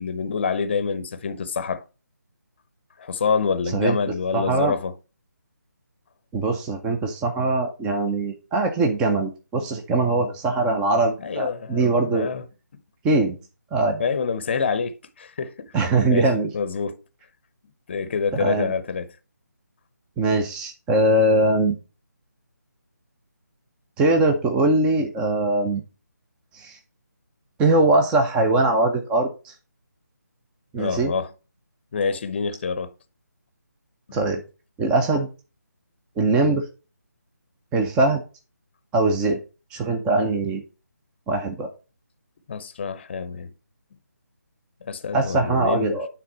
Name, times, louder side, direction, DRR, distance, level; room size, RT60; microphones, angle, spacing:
voice 1, 0.0-1.8 3.0-4.9 11.2-12.4 14.0-15.7 16.1-17.0 17.9-19.1 30.8-31.3 31.9-32.9 42.5-43.5 44.8-46.0, left 5 dB, 35° left, 0.7 m, -27 dB
voice 2, 4.3-4.7 6.3-12.3 13.0-13.4 13.7-14.0 15.7-16.5 18.4-18.7 20.2-21.7 24.0-25.8 26.5-26.8 27.6-29.5 30.7-31.1 34.1-34.4 34.8-35.3 36.2-36.6 37.7-38.2 38.9-39.4 39.7-40.6 41.3-41.7 45.1-46.1, right 2 dB, 10° right, 0.5 m, -21 dB
9.0 x 3.7 x 5.4 m
figure-of-eight pair, 155°, 10 cm